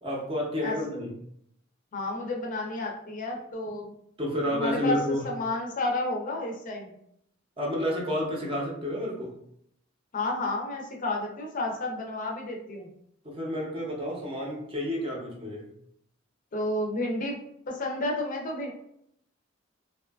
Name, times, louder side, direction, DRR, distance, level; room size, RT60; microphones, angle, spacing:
voice 1, 0.0-1.1 4.2-5.3 7.6-9.4 13.2-15.7, equal, 25° right, -2 dB, 0.6 m, -30 dB
voice 2, 1.9-3.9 4.5-5.0 5.2-6.9 10.1-12.9 16.5-17.4 17.7-18.7, left 2 dB, 40° left, 1 dB, 0.5 m, -31 dB
2.6 x 2.3 x 2.3 m, 0.73 s
head